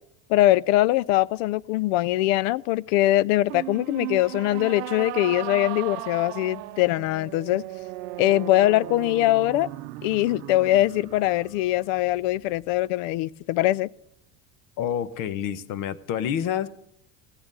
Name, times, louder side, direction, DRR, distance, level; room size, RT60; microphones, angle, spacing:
voice 1, 0.3-7.6 8.2-9.7 10.0-13.9, left 16 dB, 85° left, 0.5 m, -22 dB
sound 1, 3.5-12.8, right 17 dB, 85° right, 0.7 m, -37 dB
voice 2, 14.8-16.7, left 9 dB, 60° left, 1.0 m, -28 dB
16.5 x 8.8 x 5.4 m
cardioid pair, 130°, 36 cm